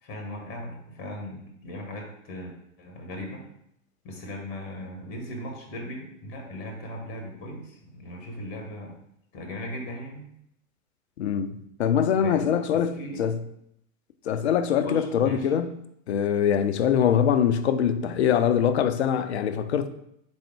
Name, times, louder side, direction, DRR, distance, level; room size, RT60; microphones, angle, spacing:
voice 1, 0.0-3.4 4.0-9.0 9.3-10.3 12.2-13.2 14.8-15.5, equal, 25° left, 0.9 m, -38 dB
voice 2, 11.2-13.4 14.3-15.7 16.1-19.9, left 8 dB, 55° left, 0.5 m, -23 dB
4.1 x 3.5 x 3.4 m
figure-of-eight pair, 100°, 42 cm